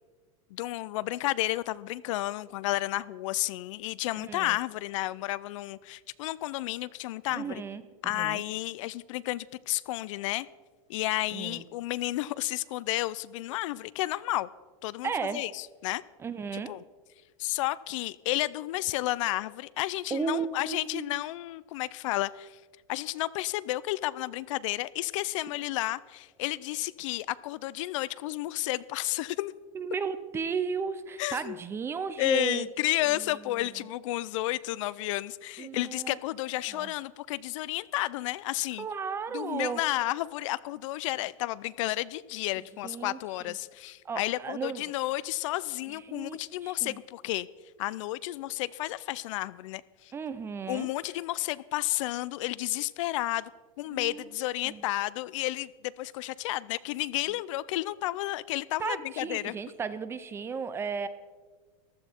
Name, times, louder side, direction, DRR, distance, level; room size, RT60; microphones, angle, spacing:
voice 1, 0.5-7.6 8.0-10.5 10.9-14.5 14.8-16.0 16.5-16.8 17.4-22.6 22.9-29.5 31.2-31.6 32.2-38.9 39.3-47.5 47.8-50.1 50.7-53.5 53.8-59.5, left 17 dB, 60° left, 19 dB, 0.4 m, -32 dB
voice 2, 4.2-4.6 7.3-8.4 11.3-11.6 15.0-15.5 16.2-16.7 20.1-21.1 29.7-32.7 33.0-33.7 35.6-36.2 36.7-36.9 38.8-39.8 42.6-43.2 43.5-43.6 44.0-44.9 45.9-47.0 50.1-50.9 53.9-54.2 54.6-54.8 58.8-61.1, right 6 dB, 15° right, 13 dB, 0.5 m, -35 dB
15.0 x 11.5 x 4.4 m, 1.4 s
supercardioid pair, 155°, 18 cm